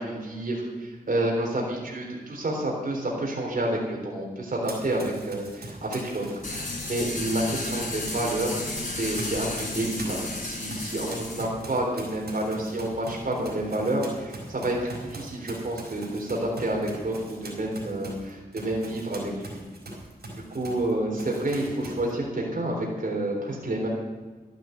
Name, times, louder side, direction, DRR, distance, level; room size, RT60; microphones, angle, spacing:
voice 1, 0.0-6.6 6.9-8.5 8.9-19.6 20.5-23.9, right 1 dB, 60° right, -2 dB, 3.7 m, -29 dB
Run, 4.6-8.4 8.7-20.9 21.2-22.1, right 2 dB, 80° right, 4.6 m, -41 dB
sound 1, 6.4-11.4, left 2 dB, 50° left, 3.8 m, -33 dB
13.0 x 9.1 x 8.0 m, 1.4 s
wide cardioid pair, 60°, 16 cm